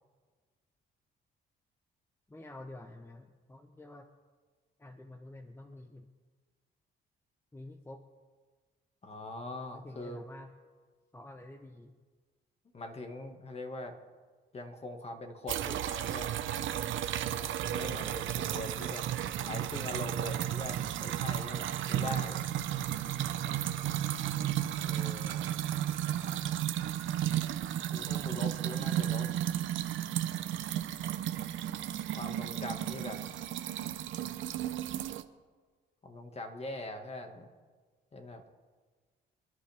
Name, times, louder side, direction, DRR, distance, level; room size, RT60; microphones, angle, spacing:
voice 1, 2.3-4.1 4.8-6.1 7.5-8.0 9.7-10.5 11.1-11.9 17.3-17.6 23.5-24.1, left 2 dB, 10° left, 5 dB, 1.0 m, -49 dB
voice 2, 9.0-10.2 12.7-13.9 14.5-16.4 17.6-19.1 19.4-22.4 24.9-25.4 27.7-29.3 32.1-33.2 36.0-37.5 38.1-38.4, left 2 dB, 30° left, 5 dB, 1.9 m, -42 dB
sound 1, 15.5-35.2, right 11 dB, 75° right, 0.8 m, -33 dB
27.5 x 11.0 x 3.6 m, 1.5 s
cardioid pair, 90°, 20 cm